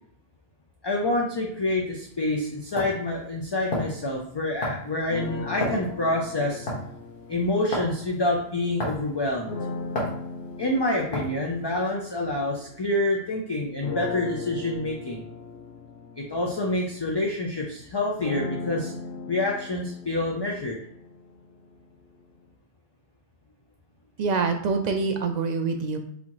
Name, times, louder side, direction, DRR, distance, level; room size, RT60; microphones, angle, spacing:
voice 1, 0.8-6.7 7.3-9.5 10.6-15.2 16.2-18.9 19.3-20.8, left 2 dB, 40° left, -2 dB, 0.3 m, -27 dB
sound 1, 2.0-2.1 2.8-3.0 3.7-4.0 4.6-4.9 5.6-5.9 6.7-6.9 7.7-7.9 8.8-9.1 9.9-10.2 11.1-11.4, left 1 dB, 60° left, 1.3 m, -29 dB
sound 2, 5.1-8.6 9.4-13.2 13.8-21.8, left 4 dB, 85° left, 1.0 m, -38 dB
voice 2, 24.2-26.0, right 4 dB, 55° right, 5 dB, 0.5 m, -25 dB
4.1 x 2.7 x 3.0 m, 0.68 s
omnidirectional pair, 1.1 m